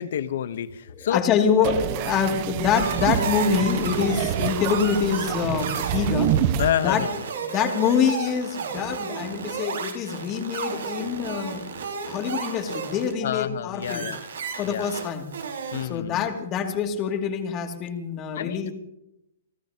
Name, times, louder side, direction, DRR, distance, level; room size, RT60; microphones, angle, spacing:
voice 1, 0.0-1.2 6.6-7.1 13.2-14.2 14.7-14.9 15.7-16.3 18.3-18.7, left 10 dB, 65° left, 14 dB, 1.0 m, -28 dB
voice 2, 0.9-6.3 6.8-7.0 7.4-11.6 12.1-14.1 14.6-15.2 15.9-18.7, left 7 dB, 30° left, 3 dB, 2.6 m, -25 dB
sound 1, 1.6-6.7, right 10 dB, 40° right, 1.0 m, -27 dB
sound 2, 2.7-13.1 13.8-15.9, right 5 dB, 80° right, 5.3 m, -33 dB
29.0 x 13.0 x 2.9 m, 0.86 s
hypercardioid pair, 135°, 0 cm